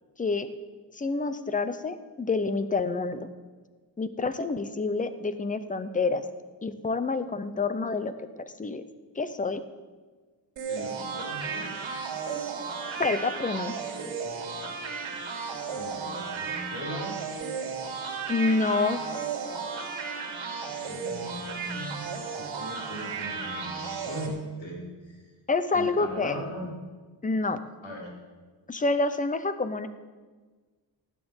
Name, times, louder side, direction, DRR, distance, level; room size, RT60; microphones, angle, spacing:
voice 1, 0.2-0.5 0.9-3.3 4.0-6.2 6.6-8.8 9.2-9.6 13.0-13.8 18.3-19.0 25.5-26.4 27.2-27.6 28.7-29.9, left 3 dB, 15° left, 12 dB, 0.6 m, -28 dB
sound 1, 10.6-24.3, right 5 dB, 75° right, 3.4 m, -34 dB
voice 2, 10.7-11.7 15.7-17.2 20.9-25.2 25.7-26.8 27.8-28.1, equal, 75° left, -3 dB, 5.4 m, -39 dB
16.0 x 9.4 x 7.9 m, 1.4 s
wide cardioid pair, 180°, 46 cm